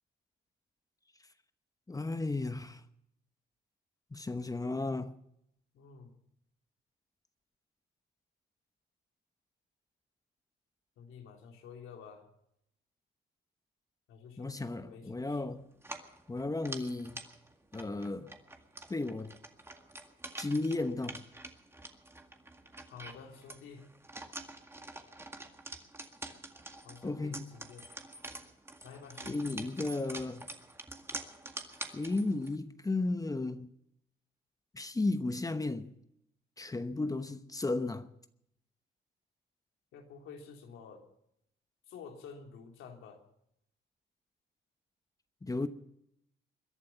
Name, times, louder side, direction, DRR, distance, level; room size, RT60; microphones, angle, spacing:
voice 1, 1.9-2.8 4.1-5.1 14.4-15.6 16.3-17.2 17.7-18.3 18.9-19.4 20.4-21.2 27.0-27.5 29.2-30.5 31.9-33.7 34.7-35.9 36.6-38.1 45.4-45.7, left 2 dB, 15° left, 1.0 m, -34 dB
voice 2, 5.7-6.2 11.0-12.3 14.1-15.4 22.9-23.9 26.8-27.9 28.8-29.5 39.9-41.0 41.9-43.2, left 6 dB, 85° left, 3.2 m, -50 dB
sound 1, 15.8-32.6, right 2 dB, 10° right, 2.0 m, -47 dB
22.0 x 11.5 x 5.8 m
cardioid pair, 90°, 20 cm